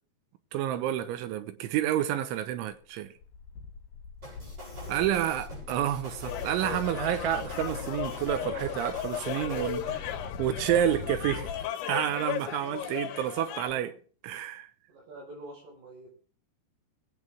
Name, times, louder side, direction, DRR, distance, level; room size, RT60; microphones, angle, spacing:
voice 1, 0.5-3.1 4.9-11.5 11.9-13.9 14.2-14.7, right 11 dB, 90° right, 3.6 m, -29 dB
sound 1, 2.9-3.0 3.2-11.7, left 5 dB, 55° left, 3.5 m, -42 dB
sound 2, 4.2-10.0, right 1 dB, 40° right, 7.9 m, -46 dB
voice 2, 4.7-5.4 9.9-10.0 13.5-14.0 14.9-16.1, right 1 dB, 60° right, 6.6 m, -48 dB
sound 3, 6.2-13.7, left 10 dB, 80° left, 3.3 m, -36 dB
22.0 x 8.7 x 3.6 m
omnidirectional pair, 5.3 m